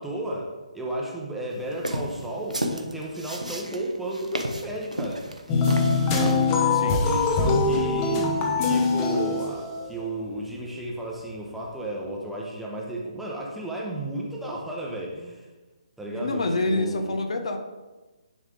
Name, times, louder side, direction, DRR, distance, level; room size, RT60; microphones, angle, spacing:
voice 1, 0.0-5.2 6.1-6.5 6.9-15.5 16.0-17.2, right 1 dB, 5° right, -3 dB, 0.8 m, -33 dB
sound 1, 1.7-6.5, right 1 dB, 85° right, 0.9 m, -32 dB
sound 2, 5.5-10.1, left 4 dB, 20° left, 0.9 m, -23 dB
voice 2, 6.7-7.1 7.4-7.9 16.1-17.6, left 2 dB, 55° left, 6 dB, 0.8 m, -28 dB
10.0 x 3.6 x 3.6 m, 1.2 s
figure-of-eight pair, 140°, 4 cm